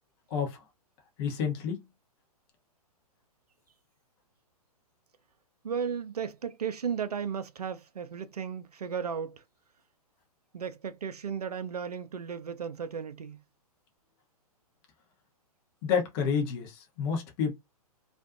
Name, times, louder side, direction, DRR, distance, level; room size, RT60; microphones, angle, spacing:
voice 1, 1.2-1.8 15.8-17.5, left 6 dB, 35° left, 0.8 m, -29 dB
voice 2, 5.6-9.4 10.5-13.4, right 7 dB, 80° right, 0.4 m, -35 dB
2.5 x 2.2 x 2.4 m
figure-of-eight pair, 115°, 20 cm